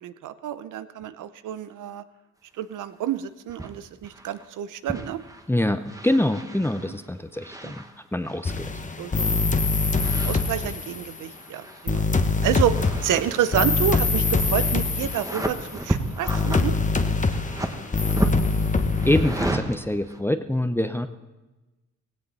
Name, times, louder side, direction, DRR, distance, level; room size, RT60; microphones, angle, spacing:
voice 1, 0.0-2.0 2.6-5.2 6.9-7.0 7.6-7.7 9.0-9.3 10.0-12.0 12.4-16.8, right 10 dB, 80° right, 13 dB, 0.8 m, -29 dB
sound 1, 3.5-3.7 4.0-4.5 4.9-5.5 5.9-8.5 9.8-10.9 11.2-12.2 12.4-20.2, right 2 dB, 10° right, 1.4 m, -34 dB
voice 2, 5.5-7.8 8.1-8.7 19.0-21.1, left 1 dB, 5° left, 8 dB, 0.8 m, -25 dB
sound 2, 8.4-11.2 11.9-15.8 16.3-19.5, left 3 dB, 25° left, 1.1 m, -24 dB
17.0 x 16.5 x 4.2 m, 1.1 s
cardioid pair, 75°, 30 cm